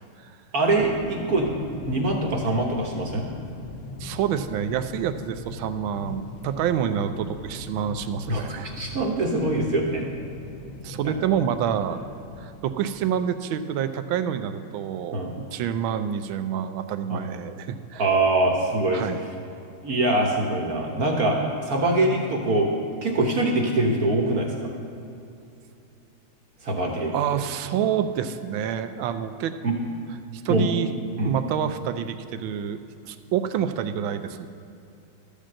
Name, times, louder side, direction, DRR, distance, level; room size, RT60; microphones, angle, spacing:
voice 1, 0.5-1.5 1.9-3.3 8.3-8.4 8.8-10.1 15.1-15.3 17.1-17.2 18.0-19.0 19.8-22.7 23.0-24.7 26.6-27.4 29.6-29.8 30.5-30.7 31.2-31.4, right 2 dB, 50° right, 0 dB, 1.4 m, -23 dB
sound 1, 0.7-12.6, left 3 dB, 75° left, 1.5 m, -40 dB
voice 2, 4.0-8.7 10.8-12.0 12.4-18.0 18.9-19.2 27.1-29.5 30.4-30.9 31.2-34.5, right 9 dB, 80° right, 10 dB, 1.3 m, -27 dB
12.5 x 5.2 x 7.5 m, 2.7 s
omnidirectional pair, 2.2 m